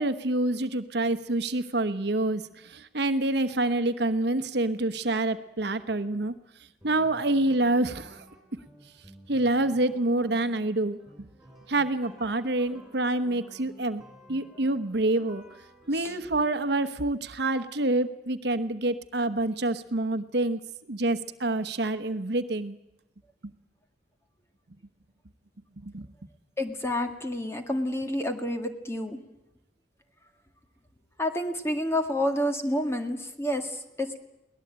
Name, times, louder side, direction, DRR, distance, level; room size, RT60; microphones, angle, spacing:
voice 1, 0.0-6.3 6.8-8.2 9.3-11.3 11.7-14.0 14.3-15.4 15.9-20.6 20.9-22.8 23.4-23.5 25.8-26.1, right 2 dB, 65° right, 10 dB, 1.1 m, -27 dB
sound 1, 6.8-16.2, right 1 dB, ahead, 6.2 m, -52 dB
voice 2, 26.6-29.2 31.2-34.2, left 1 dB, 15° left, 6 dB, 1.9 m, -29 dB
22.5 x 18.5 x 8.8 m, 0.92 s
head